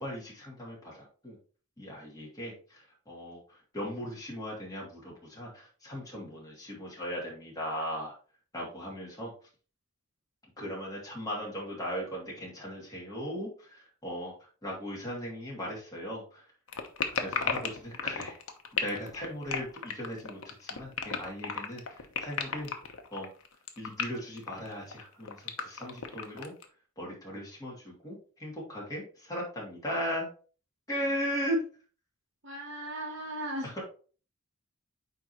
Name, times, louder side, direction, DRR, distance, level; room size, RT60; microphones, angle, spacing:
voice 1, 0.0-1.3 1.8-3.4 3.7-8.1 8.5-9.3 10.6-14.3 14.6-16.4 17.1-18.3 18.8-22.7 23.1-23.3 23.8-26.5 27.0-30.3 30.9-31.6 33.6-33.8, equal, 15° left, -4 dB, 2.7 m, -37 dB
sound 1, 16.7-26.7, left 6 dB, 85° left, 1.0 m, -34 dB
voice 2, 32.4-33.8, right 1 dB, 60° right, 0 dB, 1.0 m, -37 dB
9.2 x 3.7 x 3.0 m, 0.39 s
head